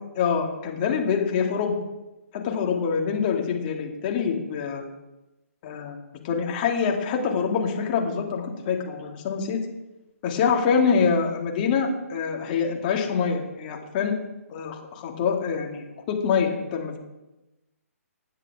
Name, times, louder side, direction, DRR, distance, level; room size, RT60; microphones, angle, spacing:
voice 1, 0.1-1.8 2.3-4.8 5.6-6.0 6.2-9.6 10.2-14.2 14.5-17.0, left 6 dB, 35° left, 1 dB, 2.7 m, -25 dB
25.0 x 9.7 x 3.8 m, 1.0 s
figure-of-eight pair, 135°, 8 cm